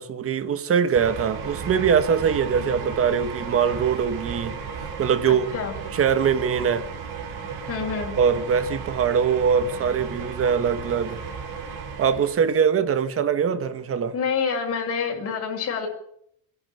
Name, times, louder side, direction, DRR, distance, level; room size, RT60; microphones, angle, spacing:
voice 1, 0.0-4.6 5.0-5.5 5.9-6.9 8.2-11.2 12.0-14.1, right 7 dB, 30° right, 1.3 m, -22 dB
sound 1, 0.9-12.5, right 6 dB, 60° right, 4.4 m, -34 dB
voice 2, 5.3-5.7 7.7-8.2 14.1-15.9, left 6 dB, 35° left, 6.6 m, -27 dB
26.0 x 11.0 x 9.3 m
cardioid pair, 180°, 43 cm